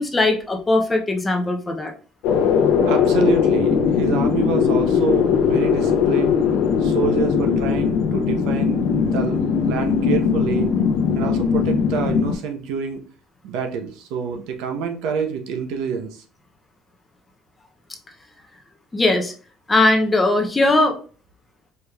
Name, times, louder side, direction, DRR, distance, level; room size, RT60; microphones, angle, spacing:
voice 1, 0.0-1.9 18.9-19.3 19.7-21.0, left 2 dB, 10° left, 3 dB, 0.5 m, -19 dB
sound 1, 2.2-12.3, left 6 dB, 80° left, 0.5 m, -19 dB
voice 2, 2.8-6.4 6.8-10.7 11.1-13.0 13.4-16.2, right 6 dB, 70° right, 5 dB, 0.7 m, -27 dB
4.5 x 3.3 x 2.3 m, 0.39 s
cardioid pair, 180°, 0 cm